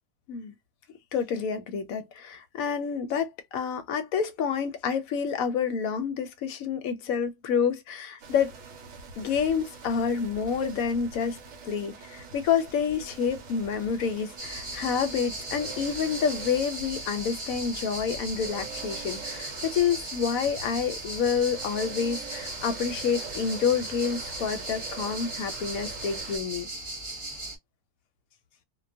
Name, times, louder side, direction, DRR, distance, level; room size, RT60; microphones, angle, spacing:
voice 1, 1.1-8.5 9.2-11.4 11.6-26.7, left 7 dB, 75° left, 1.0 m, -28 dB
sound 1, 8.2-26.4, right 5 dB, 65° right, 1.0 m, -44 dB
sound 2, 14.4-27.6, right 2 dB, 30° right, 0.7 m, -38 dB
2.4 x 2.3 x 2.5 m
omnidirectional pair, 1.6 m